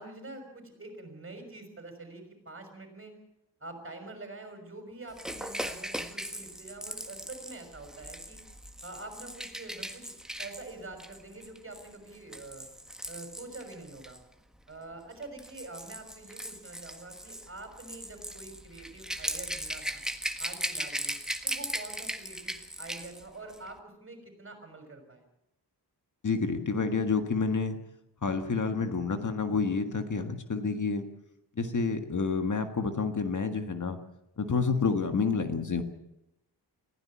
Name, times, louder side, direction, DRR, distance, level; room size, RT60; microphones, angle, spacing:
voice 1, 0.0-3.2 3.6-8.4 8.8-10.1 10.4-12.7 13.1-14.2 14.7-20.0 20.4-21.1 21.4-25.2, right 2 dB, 30° right, 5 dB, 6.1 m, -46 dB
Rattle / Rattle (instrument), 5.2-14.2 15.1-23.2 23.5-23.7, equal, ahead, 1.6 m, -38 dB
voice 2, 26.2-27.8 28.2-31.1 31.6-34.0 34.4-35.8, left 4 dB, 45° left, 7 dB, 1.7 m, -29 dB
20.5 x 16.0 x 8.6 m, 0.84 s
wide cardioid pair, 120°, 41 cm